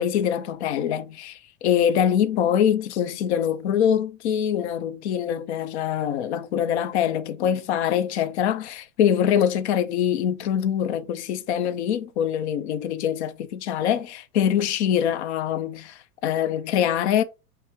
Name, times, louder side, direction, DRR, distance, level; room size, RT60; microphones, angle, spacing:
voice 1, 0.0-17.2, left 9 dB, 45° left, 0.6 m, -24 dB
5.6 x 2.1 x 2.8 m
hypercardioid pair, 145°, 49 cm